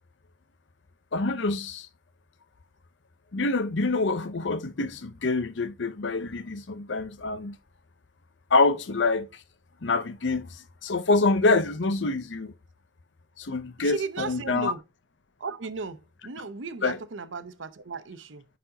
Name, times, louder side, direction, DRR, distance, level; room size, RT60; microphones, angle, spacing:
voice 1, 1.1-1.9 3.3-7.5 8.5-9.3 9.8-12.5 13.4-14.7 16.8-17.0, left 3 dB, 70° left, 0.7 m, -26 dB
voice 2, 13.8-14.8 15.4-18.5, right 4 dB, 80° right, 0.8 m, -36 dB
9.5 x 4.2 x 2.8 m
head